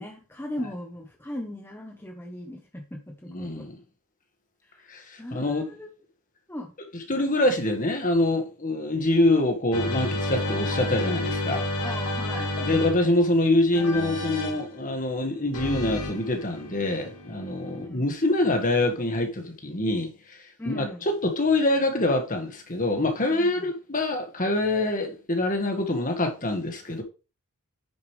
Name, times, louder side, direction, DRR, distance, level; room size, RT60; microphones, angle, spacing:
voice 1, 0.0-3.7 4.6-4.9 5.2-5.9 6.5-6.7 11.8-12.5 17.7-18.1 20.6-21.0 23.2-23.7, left 1 dB, 10° left, 1.0 m, -38 dB
voice 2, 3.3-3.8 4.9-5.6 7.1-11.6 12.6-20.1 20.7-27.0, left 2 dB, 35° left, 1.8 m, -25 dB
sound 1, 9.7-13.3 13.7-14.7 15.5-17.9, left 1 dB, 80° left, 2.2 m, -31 dB
8.9 x 6.7 x 3.4 m
head